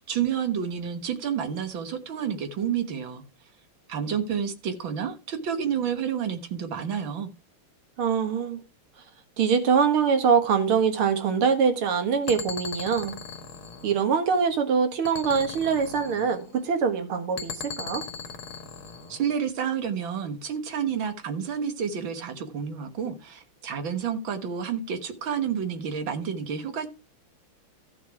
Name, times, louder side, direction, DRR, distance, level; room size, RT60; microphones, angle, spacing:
voice 1, 0.0-3.2 3.9-7.3 19.1-26.9, right 7 dB, 65° right, 2.1 m, -30 dB
voice 2, 8.0-8.6 9.4-13.2 13.8-18.1, right 6 dB, 85° right, 2.5 m, -23 dB
sound 1, 12.2-14.5 15.0-16.6 17.4-19.3, left 5 dB, 80° left, 2.3 m, -39 dB
13.5 x 6.3 x 4.7 m
omnidirectional pair, 2.3 m